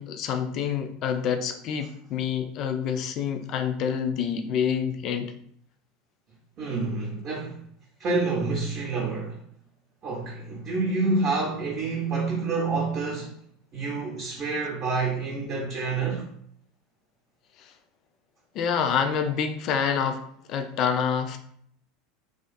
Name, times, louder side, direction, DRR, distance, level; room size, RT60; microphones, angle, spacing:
voice 1, 0.0-5.3 17.6-17.7 18.5-20.2 20.5-21.4, left 7 dB, 45° left, 0.3 m, -27 dB
voice 2, 6.6-7.6 8.0-9.4 10.0-13.3 13.7-16.2, right 3 dB, 40° right, 0.6 m, -28 dB
2.4 x 2.3 x 2.5 m
figure-of-eight pair, 75°, 0 cm